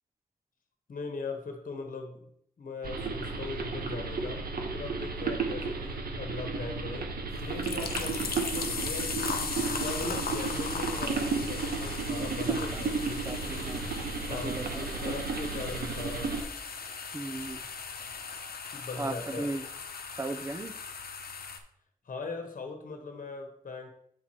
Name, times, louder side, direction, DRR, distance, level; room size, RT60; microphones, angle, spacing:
voice 1, 0.9-2.2 2.6-4.4 4.7-7.1 7.4-13.7 14.1-16.3 18.7-19.5 22.0-23.9, left 3 dB, 60° left, 4 dB, 1.2 m, -40 dB
sound 1, 2.8-16.4, right 4 dB, 80° right, 1.1 m, -33 dB
sound 2, 6.1-14.7, left 3 dB, 30° left, 0.6 m, -46 dB
sound 3, 7.3-21.6, left 5 dB, 75° left, 0.9 m, -38 dB
voice 2, 12.5-12.8 13.2-14.0 14.3-15.1 17.1-17.6 19.0-19.7 20.2-20.7, right 2 dB, 20° right, 9 dB, 0.5 m, -37 dB
8.4 x 4.5 x 4.4 m, 0.70 s
wide cardioid pair, 155°, 16 cm